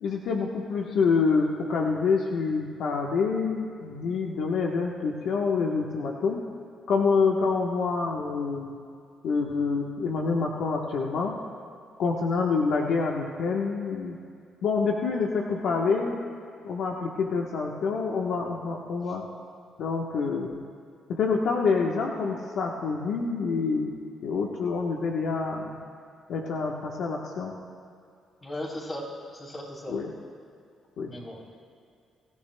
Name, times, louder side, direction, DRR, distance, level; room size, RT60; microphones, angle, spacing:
voice 1, 0.0-6.4 6.9-8.8 9.2-11.3 12.0-14.2 14.6-16.2 16.6-19.2 19.8-20.6 21.1-23.9 24.2-25.8 26.3-27.5 29.9-30.1 31.0-31.2, left 4 dB, 75° left, -1 dB, 1.1 m, -27 dB
voice 2, 28.4-30.0 31.1-31.4, left 1 dB, 30° left, -3 dB, 3.6 m, -37 dB
23.5 x 14.5 x 2.3 m, 2.3 s
cardioid pair, 90°, 0 cm